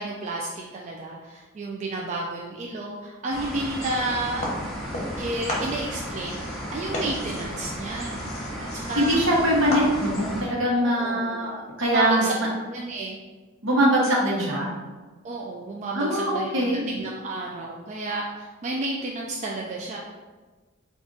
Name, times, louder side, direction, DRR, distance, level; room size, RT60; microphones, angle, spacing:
voice 1, 0.0-4.4 5.2-8.3 8.6-9.2 10.8-11.5 11.8-12.3 12.7-13.2 15.2-20.0, right 2 dB, 35° right, -2 dB, 0.3 m, -31 dB
sound 1, 3.3-10.4, equal, ahead, 0.7 m, -34 dB
sound 2, 4.4-5.2 5.5-10.3, left 1 dB, 35° left, 0.9 m, -34 dB
voice 2, 8.9-11.5 11.8-12.5 13.6-14.7 15.9-16.8, equal, 65° right, -3 dB, 1.0 m, -22 dB
3.6 x 2.4 x 3.8 m, 1.3 s
head